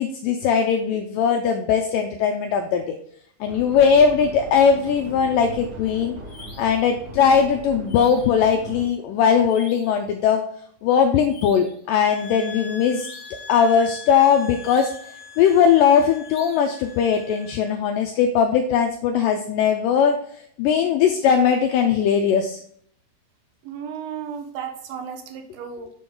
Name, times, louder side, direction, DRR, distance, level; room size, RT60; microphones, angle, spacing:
voice 1, 0.0-3.0 3.4-6.2 6.6-10.4 10.8-13.1 13.5-20.1 20.6-22.6, left 7 dB, 85° left, 4 dB, 1.9 m, -19 dB
sound 1, 3.4-8.9, right 1 dB, 60° right, 2.1 m, -39 dB
sound 2, 6.3-6.8 7.9-8.4 9.4-10.0 11.3-11.8 12.9-13.5 14.6-15.2 16.2-16.8, left 2 dB, 50° left, 2.2 m, -45 dB
sound 3, 11.9-17.8, left 5 dB, 15° left, 1.7 m, -42 dB
voice 2, 23.7-25.9, right 7 dB, 75° right, 6 dB, 2.6 m, -34 dB
6.8 x 5.3 x 3.7 m, 0.64 s
omnidirectional pair, 4.4 m